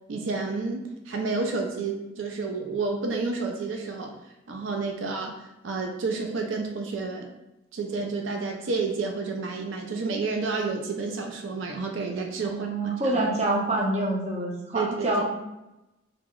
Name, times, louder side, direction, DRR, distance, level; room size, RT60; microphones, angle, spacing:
voice 1, 0.1-4.2 4.5-7.3 7.7-12.7 14.7-15.2, right 4 dB, 80° right, 2 dB, 0.4 m, -30 dB
voice 2, 12.4-15.2, right 2 dB, 35° right, -2 dB, 0.6 m, -26 dB
2.9 x 2.0 x 3.6 m, 0.94 s
head